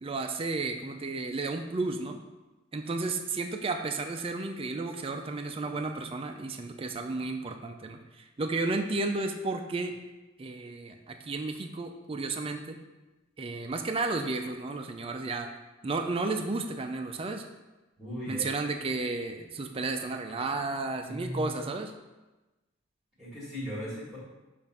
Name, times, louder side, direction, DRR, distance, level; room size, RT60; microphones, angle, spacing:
voice 1, 0.0-2.2 2.7-10.0 10.4-12.8 13.4-15.5 15.8-17.4 18.3-21.9, right 3 dB, 30° right, 5 dB, 0.4 m, -33 dB
voice 2, 18.0-18.5 21.0-21.5 23.2-24.2, equal, 5° right, -9 dB, 1.7 m, -37 dB
7.0 x 2.6 x 5.4 m, 1.1 s
head